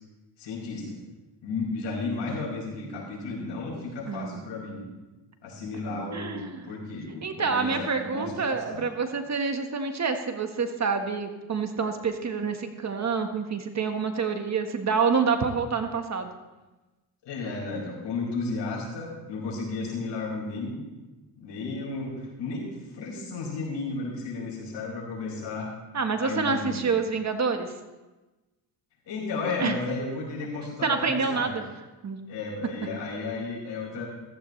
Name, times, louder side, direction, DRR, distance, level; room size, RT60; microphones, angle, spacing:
voice 1, 0.4-0.9 1.4-4.8 5.4-8.8 17.2-20.9 21.4-22.6 22.9-25.7 26.2-26.8 29.1-31.5 32.3-34.1, left 3 dB, 75° left, -3 dB, 5.8 m, -33 dB
voice 2, 4.1-4.5 6.1-6.7 7.2-16.3 25.9-27.7 29.6-29.7 30.8-31.6 32.0-32.2, right 5 dB, 40° right, 6 dB, 1.5 m, -27 dB
15.5 x 15.0 x 3.3 m, 1.1 s
cardioid pair, 85°, 43 cm